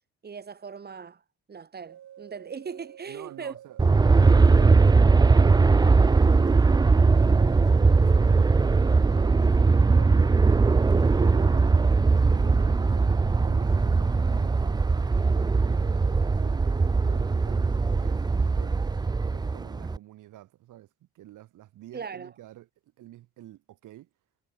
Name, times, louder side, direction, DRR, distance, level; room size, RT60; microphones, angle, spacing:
voice 1, 0.2-1.2 1.5-3.6 21.9-22.3, right 6 dB, 30° right, 1.4 m, -39 dB
sound 1, 1.9-17.4, right 11 dB, 70° right, 5.2 m, -51 dB
voice 2, 3.1-3.8 4.2-8.8 9.2-10.8 11.2-11.9 12.3-13.2 13.5-14.8 15.3-18.9 19.2-20.9 21.1-22.7 23.0-24.1, right 14 dB, 85° right, 5.1 m, -48 dB
Aircraft, 3.8-20.0, right 4 dB, 15° right, 0.4 m, -20 dB
cardioid pair, 90°, 30 cm